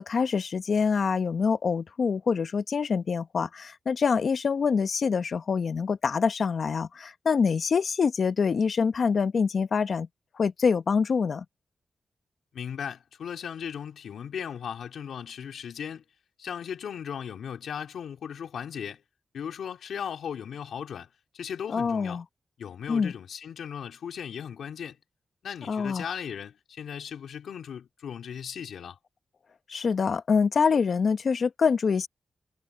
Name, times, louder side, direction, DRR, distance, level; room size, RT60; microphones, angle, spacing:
voice 1, 0.0-10.1 10.3-11.4 21.7-22.2 22.9-23.1 25.7-26.1 29.7-32.1, left 5 dB, 65° left, 1.2 m, -25 dB
voice 2, 12.5-16.0 16.4-19.0 19.3-21.1 21.3-22.2 22.6-25.0 25.4-29.0, left 8 dB, 85° left, 4.0 m, -37 dB
cardioid pair, 60°, 0 cm